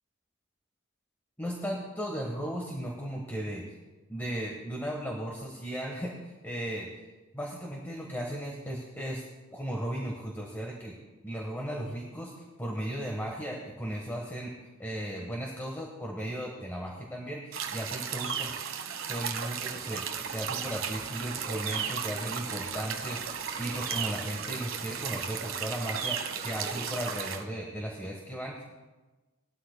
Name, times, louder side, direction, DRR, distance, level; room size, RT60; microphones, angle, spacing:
voice 1, 1.4-3.8 4.1-7.1 7.3-9.2 9.5-11.0 11.2-14.5 14.8-18.5 19.1-28.6, equal, 10° left, -1 dB, 1.2 m, -36 dB
sound 1, 17.5-27.4, right 7 dB, 70° right, 1.2 m, -35 dB
sound 2, 19.8-27.0, right 1 dB, 35° right, 2.3 m, -48 dB
19.5 x 12.5 x 2.2 m, 1.2 s
head